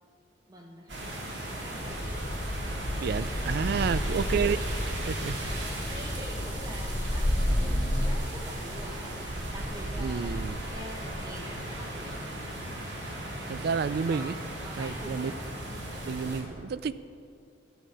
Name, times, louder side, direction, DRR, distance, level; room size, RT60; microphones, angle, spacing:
voice 1, 0.5-1.0 1.4-2.2 5.4-12.3 12.7-12.9 14.0-15.9, right 1 dB, 20° right, 1 dB, 0.9 m, -46 dB
sound 1, 0.9-16.4, right 1 dB, 85° right, 2.1 m, -35 dB
sound 2, 1.8-8.1, left 1 dB, 30° left, 0.8 m, -32 dB
voice 2, 3.0-4.6 5.0-5.4 10.0-10.6 13.5-14.3 14.8-15.3 16.0-16.9, right 6 dB, 60° right, 15 dB, 0.4 m, -30 dB
13.0 x 8.1 x 4.9 m, 2.3 s
head